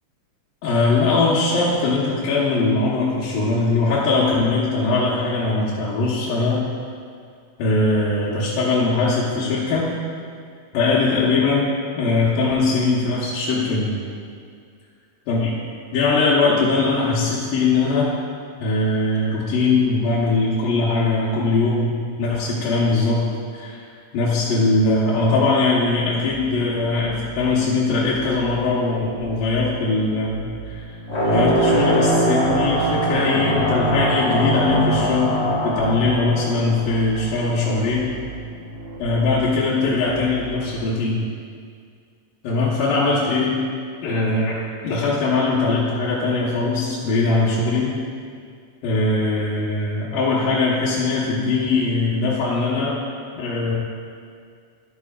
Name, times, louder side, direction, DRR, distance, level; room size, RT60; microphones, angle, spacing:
voice 1, 0.6-6.7 7.6-9.9 10.7-11.6 12.0-13.9 15.3-15.5 15.9-18.1 18.6-23.2 23.5-23.8 24.1-30.8 31.2-35.3 35.6-38.1 39.0-41.2 42.4-43.6 44.0-44.6 44.8-47.9 48.8-52.9 53.4-53.7, left 3 dB, 80° left, -8 dB, 2.9 m, -21 dB
sound 1, 26.3-40.7, right 4 dB, 65° right, 1.5 m, -38 dB
sound 2, 31.1-37.2, right 1 dB, 30° left, 1.3 m, -21 dB
11.5 x 11.5 x 2.4 m, 2.2 s
omnidirectional pair, 3.8 m